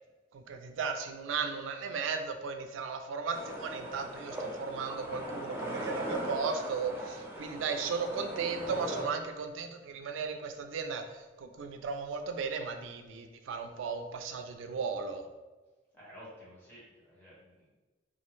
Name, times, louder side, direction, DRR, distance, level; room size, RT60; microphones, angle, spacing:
voice 1, 0.3-15.3, right 5 dB, 85° right, 6 dB, 0.3 m, -36 dB
sound 1, 3.3-9.0, right 1 dB, 10° right, 0.3 m, -39 dB
voice 2, 15.9-17.7, equal, 10° left, -8 dB, 0.9 m, -52 dB
2.3 x 2.0 x 3.0 m, 1.2 s
head